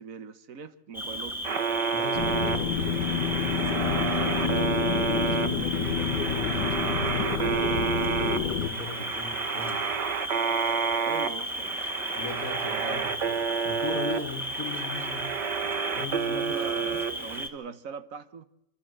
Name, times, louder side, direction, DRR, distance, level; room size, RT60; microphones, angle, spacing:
voice 1, 0.0-1.6 11.0-11.8 12.7-13.1 16.3-18.4, right 5 dB, 55° right, 1.3 m, -41 dB
Cricket, 0.9-17.5, equal, ahead, 1.9 m, -35 dB
sound 1, 1.4-17.5, right 6 dB, 80° right, 1.9 m, -30 dB
voice 2, 1.9-4.8 5.1-7.9 8.2-9.9 12.2-15.3 15.9-17.1, left 4 dB, 55° left, 1.8 m, -38 dB
sound 2, 2.1-8.7, left 8 dB, 85° left, 1.6 m, -29 dB
26.5 x 13.0 x 7.7 m
omnidirectional pair, 1.8 m